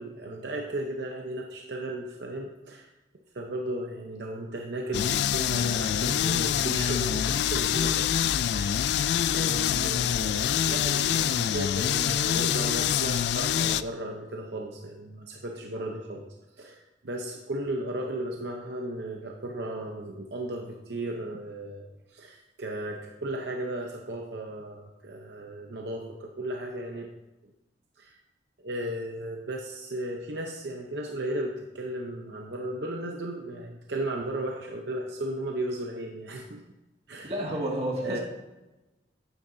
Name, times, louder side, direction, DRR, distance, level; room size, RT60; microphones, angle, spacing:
voice 1, 0.0-2.9 3.3-8.1 8.5-16.3 16.6-27.1 28.0-28.2 28.6-36.6 37.1-37.3 38.0-38.2, right 1 dB, 65° right, 1 dB, 0.8 m, -35 dB
sound 1, 4.9-13.8, left 9 dB, 65° left, 0.3 m, -26 dB
voice 2, 37.2-38.2, right 1 dB, 35° right, -2 dB, 2.0 m, -30 dB
10.5 x 9.4 x 2.7 m, 1.0 s
head